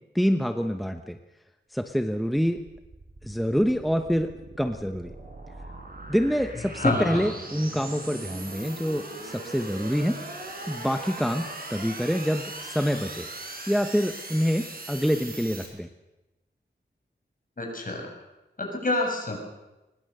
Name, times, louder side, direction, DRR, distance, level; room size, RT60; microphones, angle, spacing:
voice 1, 0.1-1.2 1.7-2.6 3.2-4.3 4.6-5.1 6.1-10.2 10.7-13.3 13.7-15.9, equal, ahead, 7 dB, 1.0 m, -26 dB
sound 1, 2.6-15.7, right 2 dB, 50° right, 5.3 m, -40 dB
voice 2, 6.7-7.2 17.6-18.1 18.6-19.4, left 2 dB, 45° left, 1 dB, 6.8 m, -27 dB
24.0 x 21.0 x 6.7 m, 1.0 s
wide cardioid pair, 90°, 19 cm